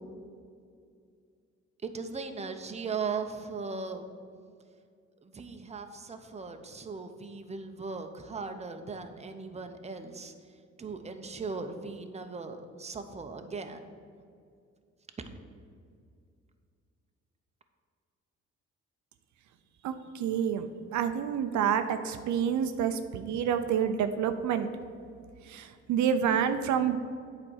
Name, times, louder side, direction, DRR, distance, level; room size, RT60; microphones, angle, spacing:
voice 1, 1.8-4.0 5.2-10.3 10.8-13.8, right 4 dB, 20° right, 6 dB, 0.8 m, -38 dB
voice 2, 19.8-24.7 25.5-27.0, right 8 dB, 70° right, 9 dB, 0.6 m, -28 dB
8.6 x 4.3 x 6.3 m, 2.3 s
cardioid pair, 90°, 30 cm